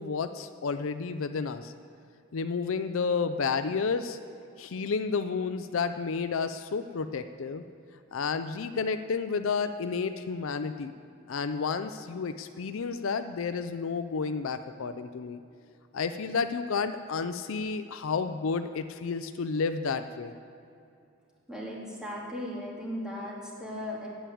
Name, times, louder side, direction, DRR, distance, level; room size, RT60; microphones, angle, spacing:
voice 1, 0.0-1.7 2.3-4.2 4.6-7.6 8.1-10.9 11.3-15.4 15.9-20.3, left 5 dB, 70° left, 10 dB, 0.5 m, -31 dB
voice 2, 21.5-24.1, left 1 dB, 5° right, -5 dB, 2.4 m, -37 dB
8.9 x 8.5 x 8.5 m, 2.6 s
head